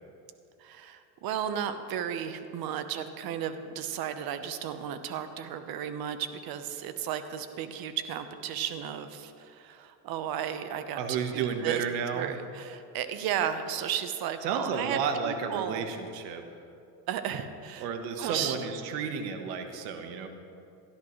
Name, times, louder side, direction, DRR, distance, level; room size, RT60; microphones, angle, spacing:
voice 1, 0.6-11.0 11.3-11.8 12.1-15.9 17.1-17.9 18.2-18.6, right 9 dB, 50° right, 10 dB, 1.0 m, -34 dB
voice 2, 11.0-12.3 14.4-16.4 17.8-20.3, right 6 dB, 75° right, 6 dB, 1.4 m, -32 dB
16.5 x 11.5 x 3.2 m, 2.6 s
supercardioid pair, 95°, 47 cm